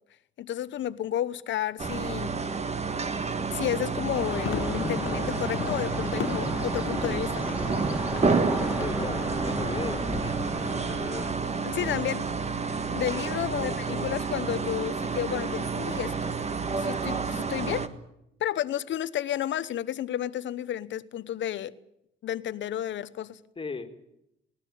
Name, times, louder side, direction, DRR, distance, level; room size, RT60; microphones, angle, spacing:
voice 1, 0.4-2.4 3.5-7.5 11.6-12.3 12.9-16.3 16.8-17.9 18.4-21.8 22.2-23.4, left 11 dB, 70° left, 1.0 m, -31 dB
sound 1, 1.8-17.9, right 4 dB, 35° right, 1.7 m, -30 dB
sound 2, 4.0-9.1, left 9 dB, 85° left, 1.5 m, -37 dB
sound 3, 4.1-11.3, equal, 5° right, 2.9 m, -34 dB
voice 2, 8.7-11.5 12.0-12.1 13.3-14.1 23.6-23.9, left 4 dB, 25° left, 2.3 m, -39 dB
19.5 x 17.5 x 9.3 m
cardioid pair, 90°, 20 cm